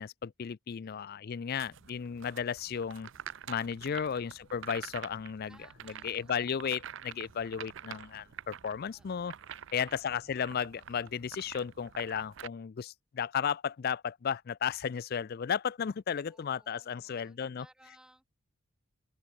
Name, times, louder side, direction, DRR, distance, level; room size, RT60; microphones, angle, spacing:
voice 1, 0.0-3.1 3.5-5.6 5.8-9.3 9.7-17.7, left 7 dB, 45° left, 0.3 m, -34 dB
voice 2, 0.7-1.0 5.5-6.6 8.9-9.3 9.7-10.2 16.3-18.3, right 1 dB, 5° right, 2.0 m, -63 dB
sound 1, 1.6-12.5, right 9 dB, 55° right, 0.5 m, -48 dB
open air
head